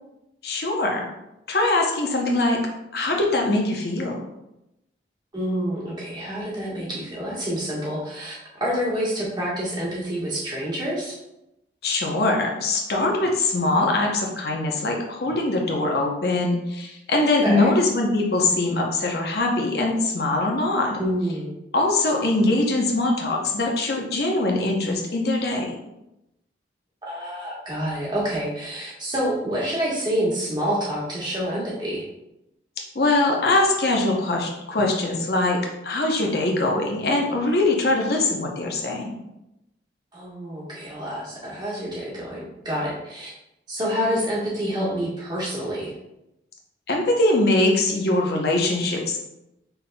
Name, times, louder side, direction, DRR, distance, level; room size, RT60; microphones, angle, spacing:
voice 1, 0.4-1.1 1.5-2.6 2.9-4.2 11.8-21.0 21.7-25.8 32.9-35.6 35.8-39.1 46.9-49.2, left 2 dB, 55° left, 0 dB, 0.7 m, -22 dB
voice 2, 5.3-11.2 17.4-17.7 21.0-21.5 27.0-32.0 40.1-43.3 43.7-45.9, equal, 25° right, -6 dB, 1.3 m, -27 dB
5.5 x 4.0 x 2.2 m, 0.88 s
head